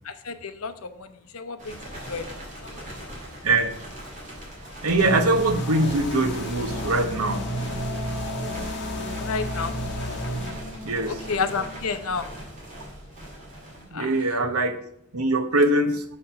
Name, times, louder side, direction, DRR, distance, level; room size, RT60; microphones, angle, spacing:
voice 1, 0.0-3.2 9.2-9.7 11.1-12.3 13.9-14.2, left 5 dB, 75° left, 10 dB, 0.7 m, -32 dB
sound 1, 1.6-14.4, equal, 35° right, 2.3 m, -40 dB
voice 2, 4.8-7.5 10.8-11.2 13.9-14.8 15.1-16.0, right 2 dB, 80° right, 8 dB, 0.9 m, -22 dB
sound 2, 5.0-10.5, equal, 50° left, 1.5 m, -32 dB
Wind instrument woodwind instrument, 6.6-12.2, left 2 dB, 55° right, 3.6 m, -38 dB
6.6 x 5.9 x 5.6 m, 0.71 s
head